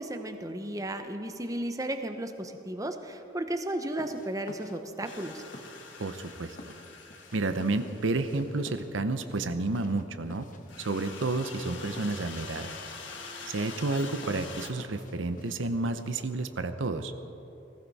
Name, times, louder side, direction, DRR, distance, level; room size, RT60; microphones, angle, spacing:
voice 1, 0.0-5.4, right 1 dB, 20° right, 7 dB, 0.8 m, -34 dB
sound 1, 3.9-16.5, left 1 dB, 45° left, 1.0 m, -52 dB
sound 2, 5.0-8.9 10.7-14.7, left 4 dB, 80° left, 1.5 m, -45 dB
voice 2, 6.0-6.7 7.3-10.5 10.8-12.7 13.5-17.1, right 2 dB, 90° right, 10 dB, 0.8 m, -31 dB
19.5 x 15.5 x 4.2 m, 2.9 s
head